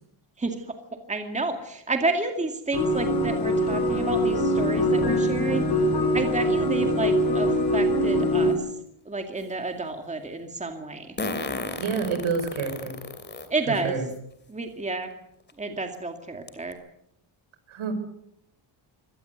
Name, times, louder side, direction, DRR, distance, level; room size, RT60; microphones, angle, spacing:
voice 1, 1.1-5.7 6.1-8.6 9.1-11.1 13.5-14.0 14.5-15.1 15.6-16.8, right 3 dB, 15° right, 5 dB, 2.3 m, -30 dB
sound 1, 2.7-8.5, equal, 50° left, 6.1 m, -23 dB
Fart, 8.4-8.5 11.2-13.5 14.1-14.2 15.5-15.6 15.9-16.0 16.5-16.7, left 3 dB, 20° left, 2.8 m, -33 dB
voice 2, 11.8-13.0 13.7-14.1 17.7-17.9, right 5 dB, 75° right, 9 dB, 5.6 m, -28 dB
24.5 x 18.5 x 8.0 m, 0.75 s
wide cardioid pair, 165°, 48 cm